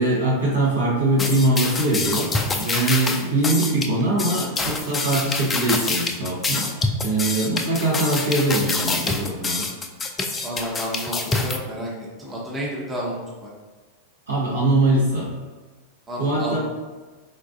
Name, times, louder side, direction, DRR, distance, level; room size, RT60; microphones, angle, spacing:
voice 1, 0.0-6.7 7.0-9.7 14.3-15.3 16.2-16.6, right 2 dB, 75° right, -6 dB, 1.0 m, -22 dB
sound 1, 1.2-11.6, left 3 dB, 15° left, 0.3 m, -26 dB
voice 2, 10.4-11.9 12.2-13.1 13.4-13.5 16.1-16.6, equal, 15° right, -5 dB, 0.7 m, -30 dB
3.9 x 2.3 x 2.5 m, 1.3 s
figure-of-eight pair, 90°, 0 cm